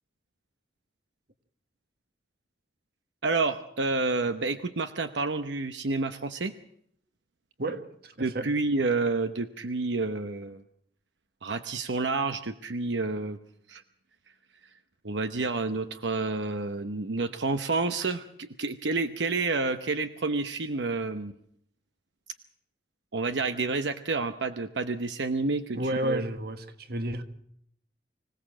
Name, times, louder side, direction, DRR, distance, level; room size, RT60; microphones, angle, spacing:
voice 1, 3.2-6.5 8.2-10.6 11.4-13.4 13.7-13.8 15.0-21.3 23.1-26.2, right 3 dB, 85° right, 0.9 m, -29 dB
voice 2, 7.6-8.5 25.7-27.2, right 1 dB, 60° right, 1.5 m, -32 dB
25.5 x 17.0 x 7.5 m
head